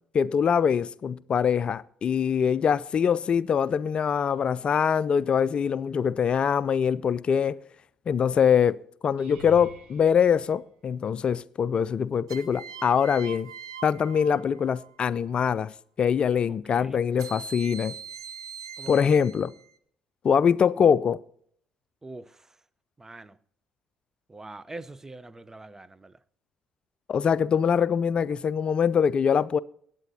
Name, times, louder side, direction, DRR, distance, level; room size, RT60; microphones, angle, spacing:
voice 1, 0.1-7.6 8.1-13.5 13.8-15.7 16.0-17.9 18.9-19.5 20.2-21.2 27.1-29.6, left 7 dB, 45° left, 0.4 m, -23 dB
sound 1, 9.2-11.5 12.1-12.6 13.0-13.1 17.5-17.6, right 3 dB, 60° right, 1.8 m, -49 dB
sound 2, 9.2-9.8 12.3-14.9 17.2-19.8, right 8 dB, 80° right, 0.5 m, -43 dB
voice 2, 16.5-17.0 18.8-19.1 22.0-22.6 23.0-23.4 24.3-26.2, right 2 dB, 20° right, 0.7 m, -44 dB
23.0 x 9.1 x 2.8 m
figure-of-eight pair, 45°, 3 cm